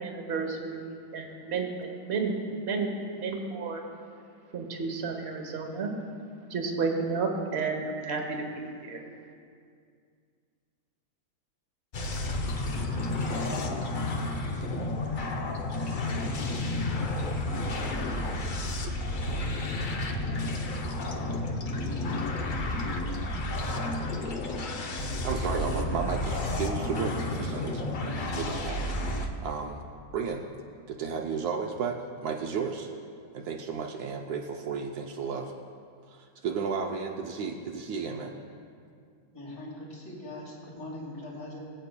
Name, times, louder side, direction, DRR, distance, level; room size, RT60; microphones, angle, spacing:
voice 1, 0.0-3.8 4.5-5.9 6.5-9.0, right 4 dB, 45° right, 3 dB, 1.2 m, -32 dB
sound 1, 11.9-29.3, left 1 dB, 55° left, 0.5 m, -31 dB
voice 2, 25.0-29.8 30.1-30.5 30.9-32.9 33.3-35.5 36.1-38.3, right 5 dB, 75° right, 2 dB, 1.1 m, -33 dB
voice 3, 39.3-41.6, left 1 dB, 80° left, -4 dB, 2.8 m, -41 dB
20.5 x 8.3 x 2.2 m, 2.2 s
omnidirectional pair, 1.7 m